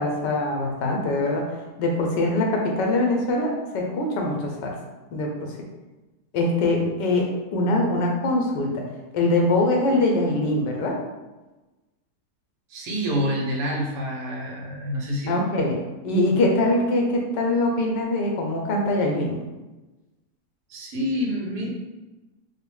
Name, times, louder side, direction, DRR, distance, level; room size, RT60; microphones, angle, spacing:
voice 1, 0.0-1.4 1.8-4.8 5.1-5.5 6.3-8.8 9.1-11.0 15.3-15.8 16.0-19.4, left 2 dB, 85° left, 0 dB, 1.4 m, -23 dB
voice 2, 12.7-15.4 20.7-21.7, equal, 75° right, -1 dB, 1.3 m, -27 dB
4.3 x 2.1 x 3.3 m, 1.1 s
omnidirectional pair, 1.8 m